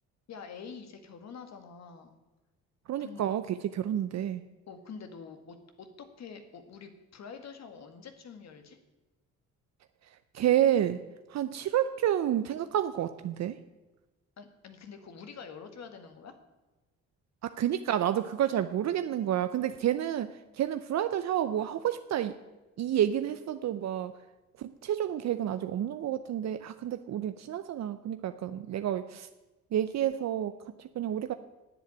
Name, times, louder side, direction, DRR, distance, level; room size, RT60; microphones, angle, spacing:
voice 1, 0.3-2.2 3.0-3.2 4.7-8.8 14.4-16.4, left 6 dB, 60° left, 7 dB, 1.8 m, -46 dB
voice 2, 2.9-4.4 10.3-11.0 11.3-13.6 17.6-22.4 22.8-24.1 24.6-29.3 29.7-31.3, right 11 dB, 60° right, 10 dB, 0.7 m, -29 dB
9.9 x 7.8 x 9.0 m, 1.1 s
cardioid pair, 90°, 30 cm